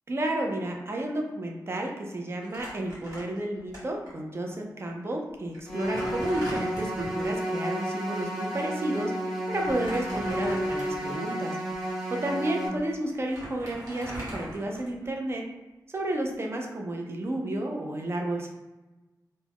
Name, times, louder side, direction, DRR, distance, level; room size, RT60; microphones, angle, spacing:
voice 1, 0.1-9.1 9.5-11.6 12.1-15.4 15.9-18.5, right 1 dB, 35° right, 1 dB, 0.4 m, -31 dB
Crumpling crinkling, 2.4-3.8 4.1-4.2 5.0-5.1 5.5-7.3 9.5-11.1 11.7-11.9 12.8-12.9 13.1-15.2, equal, 55° right, 1.2 m, -40 dB
sound 1, 5.7-12.7, equal, 5° right, 0.8 m, -31 dB
2.3 x 2.1 x 3.4 m, 1.1 s
wide cardioid pair, 125°, 7 cm